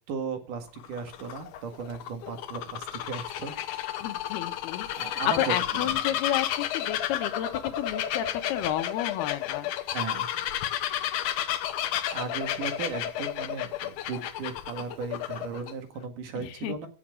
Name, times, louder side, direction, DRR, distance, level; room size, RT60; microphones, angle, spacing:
voice 1, 0.1-3.5 4.9-5.5 5.8-6.2 9.9-10.3 12.1-16.9, right 5 dB, 60° right, 6 dB, 3.1 m, -36 dB
Bird vocalization bird call bird song, 0.7-15.7, left 11 dB, 70° left, 2.1 m, -32 dB
voice 2, 4.0-9.9 16.4-16.8, left 12 dB, 85° left, 10 dB, 3.1 m, -31 dB
16.5 x 7.3 x 6.4 m, 0.38 s
omnidirectional pair, 4.4 m